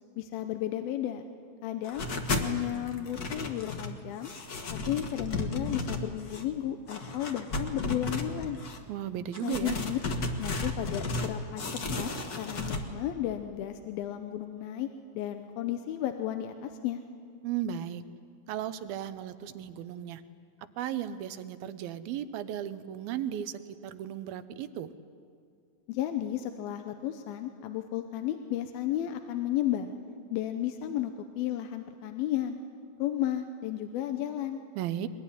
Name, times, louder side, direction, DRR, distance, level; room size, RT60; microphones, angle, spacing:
voice 1, 0.2-1.2 1.6-2.1 2.4-4.3 4.9-8.6 9.4-10.0 10.3-12.1 12.4-14.9 15.1-17.0 25.9-29.9 30.3-32.6 33.0-34.6, left 12 dB, 80° left, 7 dB, 2.7 m, -33 dB
sound 1, 1.8-2.5 2.9-4.0 4.2-6.4 6.9-8.8 9.3-11.3 11.6-12.8, left 2 dB, 60° left, 1.0 m, -34 dB
voice 2, 8.9-9.8 17.4-18.0 18.5-20.2 20.8-24.9 34.8-35.1, right 10 dB, 80° right, 12 dB, 2.7 m, -35 dB
22.5 x 21.0 x 10.0 m, 2.3 s
omnidirectional pair, 4.3 m